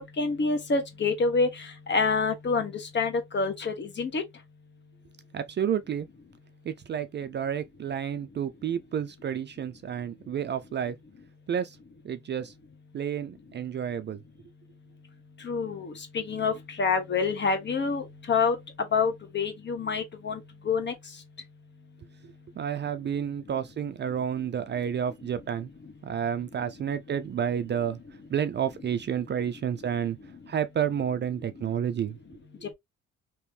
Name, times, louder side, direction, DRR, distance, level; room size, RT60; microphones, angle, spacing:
voice 1, 0.2-1.5 1.9-4.2 15.4-18.6 18.9-20.4 20.6-20.9, left 4 dB, 40° left, 1.2 m, -27 dB
voice 2, 5.3-6.1 6.7-11.0 11.5-11.8 12.0-12.5 12.9-14.2 22.6-25.7 26.0-28.0 28.3-30.2 30.5-32.2, right 8 dB, 40° right, 0.4 m, -30 dB
3.0 x 3.0 x 3.3 m
cardioid pair, 100°, 29 cm